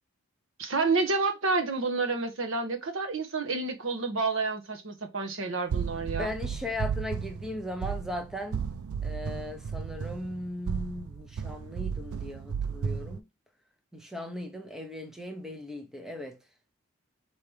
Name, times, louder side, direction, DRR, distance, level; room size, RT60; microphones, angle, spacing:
voice 1, 0.6-6.3, right 3 dB, 65° right, 1.0 m, -29 dB
sound 1, 5.7-13.2, right 6 dB, 85° right, 0.4 m, -34 dB
voice 2, 6.1-8.7 9.0-13.2 13.9-16.4, left 1 dB, ahead, 0.6 m, -37 dB
4.7 x 2.9 x 3.2 m
head